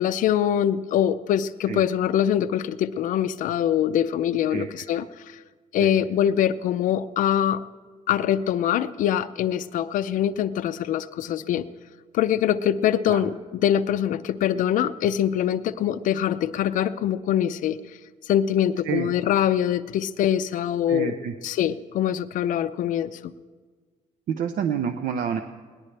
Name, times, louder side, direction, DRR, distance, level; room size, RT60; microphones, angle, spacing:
voice 1, 0.0-5.4 5.7-7.6 8.1-11.7 12.1-17.8 18.2-21.2 21.4-23.3, left 10 dB, 75° left, 14 dB, 0.5 m, -24 dB
voice 2, 20.9-21.3 24.3-25.4, right 8 dB, 75° right, 7 dB, 0.7 m, -28 dB
21.5 x 18.5 x 3.4 m, 1.5 s
cardioid pair, 180°, 14 cm